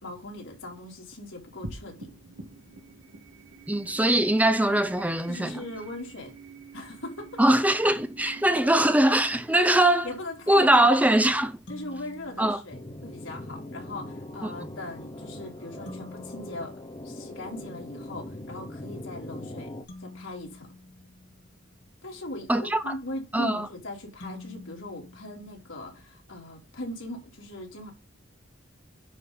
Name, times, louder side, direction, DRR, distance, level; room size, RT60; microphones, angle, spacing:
voice 1, 0.0-2.1 5.3-6.4 6.7-7.6 8.6-8.9 9.6-11.3 11.7-16.7 17.0-19.7 20.0-20.7 22.0-27.9, left 1 dB, 80° left, 3.6 m, -39 dB
sound 1, 1.6-12.3, right 3 dB, 65° right, 2.0 m, -48 dB
voice 2, 3.7-5.6 7.4-10.1 10.5-11.5 12.4-12.6 22.5-22.9 23.3-23.7, right 1 dB, 10° right, 0.7 m, -22 dB
sound 2, 11.7-13.3 15.9-17.9 19.9-22.0 24.2-26.3, left 2 dB, 60° left, 3.0 m, -48 dB
sound 3, 12.7-19.8, left 1 dB, 25° left, 1.0 m, -41 dB
10.0 x 4.0 x 5.6 m
head